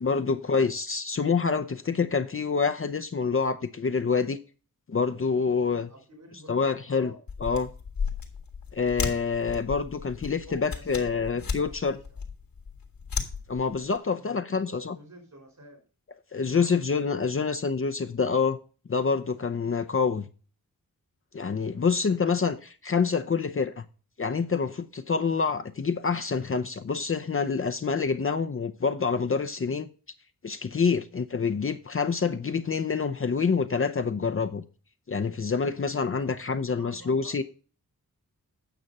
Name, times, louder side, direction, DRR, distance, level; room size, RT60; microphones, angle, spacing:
voice 1, 0.0-4.4 4.9-5.9 6.5-7.1 7.4-7.7 8.7-12.0 13.5-15.0 16.3-18.6 18.9-20.3 21.3-23.8 24.2-29.9 30.4-34.6 35.1-37.4, left 5 dB, 40° left, 0.7 m, -27 dB
voice 2, 5.9-7.2 10.4-12.2 14.0-15.8 16.5-16.8 17.1-17.6 21.7-21.8 36.1-36.4 36.7-37.4, equal, 55° right, 4.3 m, -50 dB
sound 1, 7.3-14.0, left 5 dB, 75° left, 2.0 m, -35 dB
9.1 x 6.0 x 5.4 m
cardioid pair, 60°, 34 cm